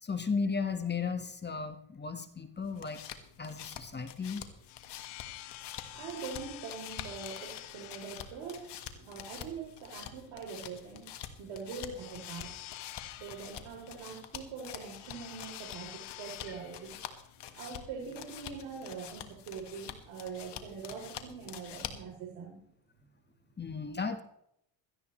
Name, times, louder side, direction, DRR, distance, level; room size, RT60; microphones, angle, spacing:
voice 1, 0.0-3.0 3.4-4.4 23.6-24.2, left 5 dB, 20° left, 8 dB, 1.3 m, -35 dB
sound 1, 2.6-22.2, left 9 dB, 60° left, 1.6 m, -47 dB
sound 2, 4.3-18.9, left 16 dB, 80° left, 1.0 m, -49 dB
voice 2, 5.9-11.1 11.4-12.5 13.2-17.0 17.6-22.6 22.9-23.0, right 5 dB, 80° right, -1 dB, 3.4 m, -43 dB
17.0 x 13.5 x 3.1 m, 0.75 s
supercardioid pair, 90°, 47 cm